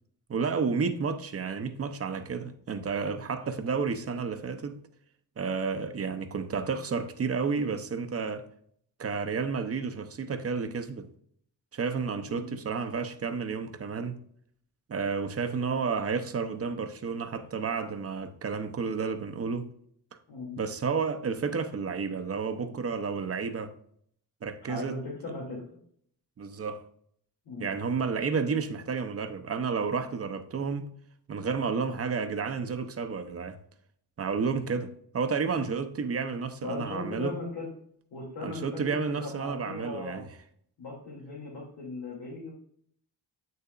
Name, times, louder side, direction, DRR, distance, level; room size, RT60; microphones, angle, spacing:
voice 1, 0.3-4.8 5.4-8.4 9.0-11.1 11.7-14.2 14.9-19.7 20.6-23.7 24.4-25.0 26.4-26.8 27.6-30.9 31.3-33.6 34.2-37.4 38.4-40.3, right 5 dB, 35° right, 0.7 m, -31 dB
voice 2, 12.2-12.6 20.3-20.6 24.6-25.6 27.4-27.7 35.5-35.8 36.6-37.7 38.1-40.2 40.8-42.5, left 2 dB, 85° left, 2.6 m, -38 dB
8.7 x 6.7 x 2.4 m
wide cardioid pair, 160°, 40 cm